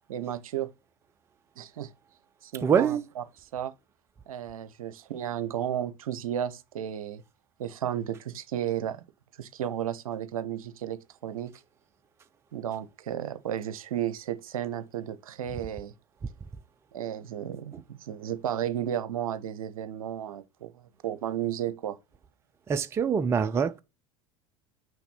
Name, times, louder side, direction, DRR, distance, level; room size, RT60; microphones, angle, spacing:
voice 1, 0.1-0.7 1.6-1.9 2.4-3.2 3.5-3.7 4.3-7.2 7.6-9.0 9.4-11.5 12.5-15.9 16.9-22.0, right 10 dB, 65° right, 0.7 m, -33 dB
voice 2, 2.6-3.0 22.7-23.8, right 7 dB, 15° right, 0.4 m, -24 dB
5.9 x 3.6 x 5.6 m
figure-of-eight pair, 80°, 19 cm